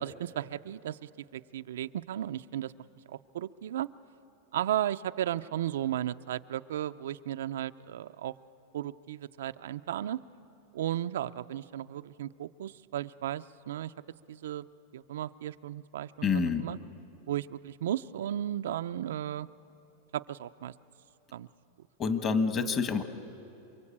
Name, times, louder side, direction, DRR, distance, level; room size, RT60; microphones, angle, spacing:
voice 1, 0.0-2.7 3.1-3.9 4.5-8.3 8.7-10.2 10.7-13.9 14.3-14.7 14.9-16.8 17.3-19.5 20.1-20.7 21.3-21.5, right 11 dB, 85° right, 11 dB, 0.5 m, -35 dB
voice 2, 16.2-16.6 22.0-23.0, left 5 dB, 25° left, 9 dB, 1.4 m, -27 dB
27.5 x 23.0 x 8.7 m, 2.9 s
supercardioid pair, 150°, 0 cm